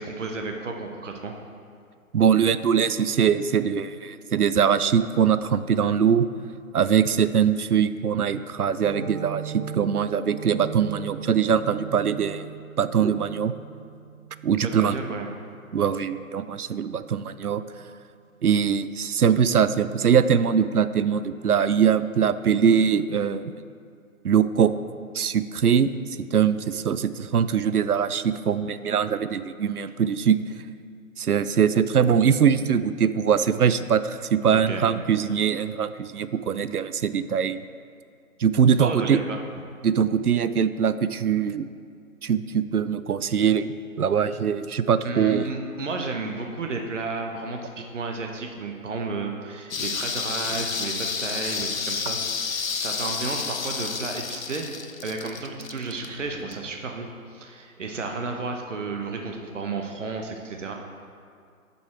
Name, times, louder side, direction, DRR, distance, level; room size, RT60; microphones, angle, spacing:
voice 1, 0.0-1.3 14.6-15.3 34.5-34.8 38.8-39.4 45.0-54.7 55.0-60.7, right 3 dB, 55° right, 3 dB, 0.9 m, -32 dB
voice 2, 2.1-6.3 6.7-12.5 12.8-13.5 14.4-15.0 15.7-17.6 18.4-23.5 24.2-24.7 25.1-25.9 26.3-30.4 31.2-37.6 38.4-39.2 39.8-41.7 42.2-45.5, right 7 dB, 85° right, 13 dB, 0.5 m, -22 dB
sound 1, 8.8-16.1, right 7 dB, 25° right, 2.0 m, -39 dB
sound 2, 49.7-56.7 57.1-57.2, left 5 dB, 65° left, 0.7 m, -30 dB
9.3 x 5.5 x 4.3 m, 2.2 s
figure-of-eight pair, 145°, 44 cm